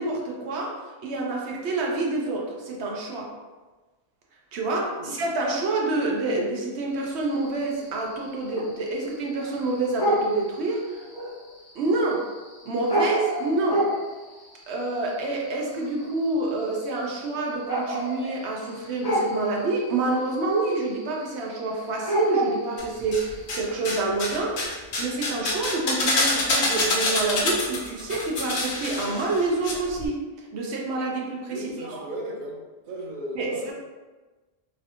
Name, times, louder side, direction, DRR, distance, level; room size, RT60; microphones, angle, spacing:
voice 1, 0.0-3.3 4.5-10.9 11.7-12.3 12.7-13.9 14.7-24.7 25.0-30.2 30.5-32.0 33.3-33.7, right 2 dB, 85° right, -1 dB, 0.9 m, -27 dB
sound 1, 7.0-23.9, right 1 dB, 30° left, 0.4 m, -31 dB
sound 2, 22.8-23.6 23.8-29.7 30.0-30.1, left 2 dB, 80° left, 0.9 m, -26 dB
voice 2, 31.5-32.6 32.9-33.7, right 1 dB, 55° right, -1 dB, 0.7 m, -35 dB
3.1 x 2.5 x 2.7 m, 1.2 s
omnidirectional pair, 1.1 m